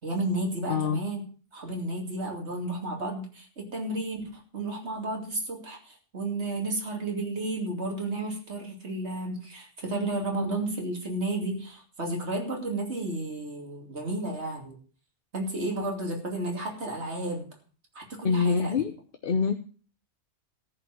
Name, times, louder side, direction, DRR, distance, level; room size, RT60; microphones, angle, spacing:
voice 1, 0.0-1.2 1.5-14.8 15.3-17.5 17.9-18.7, right 2 dB, 75° right, 1 dB, 3.1 m, -32 dB
voice 2, 0.7-1.1 18.2-19.0 19.2-19.5, left 5 dB, 55° left, 6 dB, 1.0 m, -25 dB
14.0 x 5.8 x 7.5 m, 0.40 s
omnidirectional pair, 1.2 m